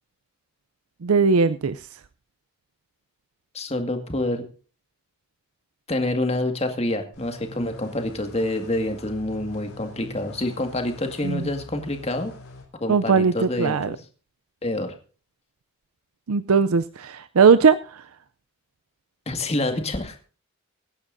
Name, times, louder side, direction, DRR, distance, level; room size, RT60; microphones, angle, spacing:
voice 1, 1.0-1.8 11.2-11.4 12.9-13.3 13.6-14.0 16.3-18.0, right 5 dB, 75° right, 13 dB, 0.5 m, -19 dB
voice 2, 3.5-4.4 5.9-12.3 12.8-14.0 14.6-14.9 19.3-20.2, left 1 dB, 30° left, 5 dB, 1.9 m, -27 dB
sound 1, 7.1-12.7, left 2 dB, 70° left, 4.0 m, -44 dB
24.5 x 9.9 x 2.7 m, 0.37 s
head